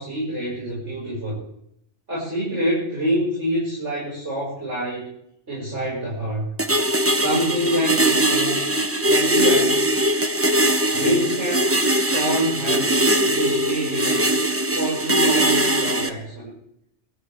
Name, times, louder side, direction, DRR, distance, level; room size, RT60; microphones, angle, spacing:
voice 1, 0.0-1.4 2.1-5.1 5.5-6.5 7.1-8.7 9.1-9.8 10.9-11.8 12.1-14.3 14.7-16.5, equal, 75° right, -7 dB, 6.4 m, -26 dB
sound 1, 6.6-16.1, right 1 dB, 15° right, 0.9 m, -21 dB
27.5 x 13.5 x 3.6 m, 0.73 s
omnidirectional pair, 1.2 m